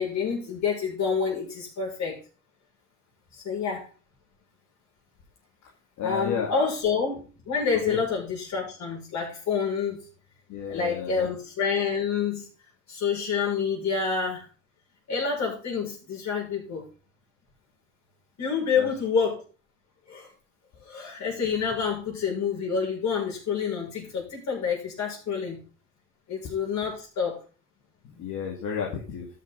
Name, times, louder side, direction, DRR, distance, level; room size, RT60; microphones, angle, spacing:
voice 1, 0.0-2.2 3.3-3.9 6.0-10.0 10.7-12.5 12.9-14.4 15.1-16.9 18.4-19.4 20.1-20.3 20.8-25.6 26.3-27.4, left 6 dB, 65° left, -2 dB, 6.2 m, -28 dB
voice 2, 6.0-6.7 7.9-8.0 10.5-11.3 18.8-18.9 28.2-29.3, left 7 dB, 80° left, -1 dB, 2.3 m, -32 dB
13.5 x 6.9 x 4.0 m, 0.36 s
cardioid pair, 90°, 30 cm